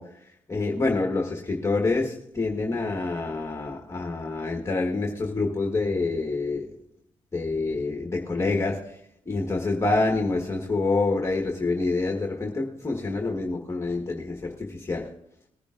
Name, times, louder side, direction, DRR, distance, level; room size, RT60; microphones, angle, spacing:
voice 1, 0.0-6.8 7.3-9.0 9.2-15.1, left 3 dB, 20° left, 1.4 m, -27 dB
20.0 x 10.0 x 2.5 m
cardioid pair, 80°, 12 cm